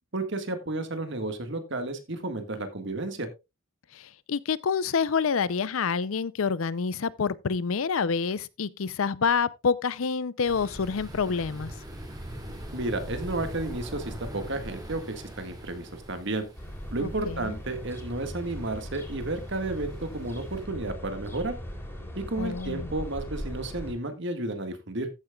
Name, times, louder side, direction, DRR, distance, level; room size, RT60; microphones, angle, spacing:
voice 1, 0.1-3.3 12.7-16.4 16.9-21.6 22.1-25.1, right 2 dB, 60° right, 1.7 m, -32 dB
voice 2, 3.9-11.7 17.0-17.6 22.4-22.9, left 5 dB, 75° left, 0.5 m, -27 dB
sound 1, 10.4-20.6, right 1 dB, 20° right, 2.7 m, -42 dB
sound 2, 16.5-23.9, equal, 10° left, 3.5 m, -39 dB
14.0 x 8.8 x 2.3 m
head